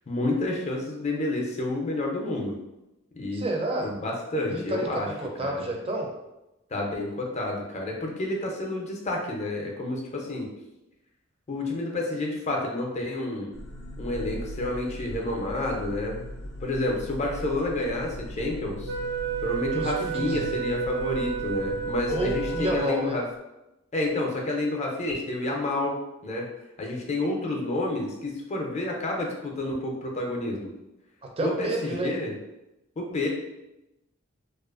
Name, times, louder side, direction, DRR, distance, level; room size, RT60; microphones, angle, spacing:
voice 1, 0.1-2.6 3.2-3.4 3.8-5.1 5.4-5.7 6.7-10.5 11.5-13.5 14.0-16.2 16.6-18.9 19.4-23.2 23.9-26.5 26.8-30.7 31.4-32.3 33.0-33.3, left 2 dB, 35° left, 0 dB, 0.5 m, -29 dB
voice 2, 3.3-3.9 4.5-6.1 19.7-20.5 22.1-23.2 31.2-32.1, right 1 dB, 30° right, 1 dB, 0.4 m, -30 dB
sound 1, 13.5-22.8, left 1 dB, 85° left, 0.5 m, -39 dB
Wind instrument woodwind instrument, 18.9-23.2, right 7 dB, 90° right, 0.6 m, -32 dB
2.5 x 2.4 x 2.4 m, 0.94 s
head